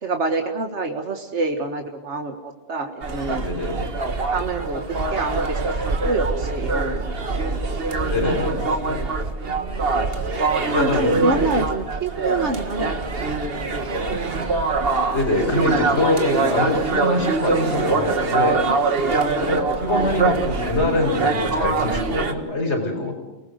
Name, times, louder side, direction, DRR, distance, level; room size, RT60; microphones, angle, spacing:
voice 1, 0.0-3.5 4.3-7.6 9.4-10.1 10.6-13.6 19.0-19.4, right 3 dB, 85° right, 4 dB, 1.8 m, -27 dB
sound 1, 3.0-22.3, right 3 dB, 60° right, 1.8 m, -24 dB
voice 2, 3.4-3.8 8.0-9.1 10.5-11.5 15.1-18.6 19.4-23.2, left 2 dB, 80° left, 3 dB, 4.9 m, -24 dB
30.0 x 19.5 x 6.6 m, 1.1 s
omnidirectional pair, 1.1 m